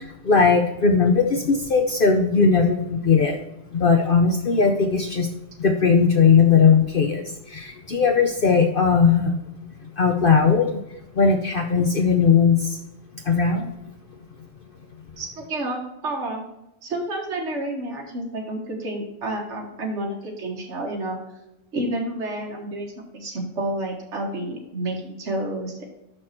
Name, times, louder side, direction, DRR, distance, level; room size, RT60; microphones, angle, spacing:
voice 1, 0.0-3.4 3.7-5.3 5.6-9.4 9.8-12.8 13.2-13.7, left 5 dB, 50° left, 4 dB, 0.8 m, -19 dB
voice 2, 15.2-16.4 16.8-21.2 21.7-25.8, right 1 dB, 65° right, -1 dB, 1.8 m, -30 dB
6.3 x 6.1 x 4.3 m, 0.88 s
omnidirectional pair, 1.3 m